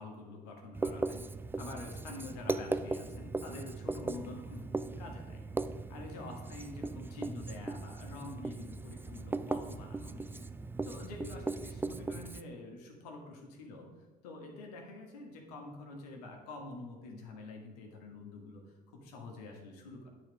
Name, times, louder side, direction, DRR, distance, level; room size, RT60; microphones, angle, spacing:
voice 1, 0.0-10.5 10.8-13.9 14.2-20.1, left 2 dB, 85° left, 1 dB, 1.5 m, -47 dB
Writing, 0.7-12.4, right 3 dB, 10° right, 0.3 m, -38 dB
9.3 x 4.0 x 5.2 m, 1.3 s
hypercardioid pair, 65°, 19 cm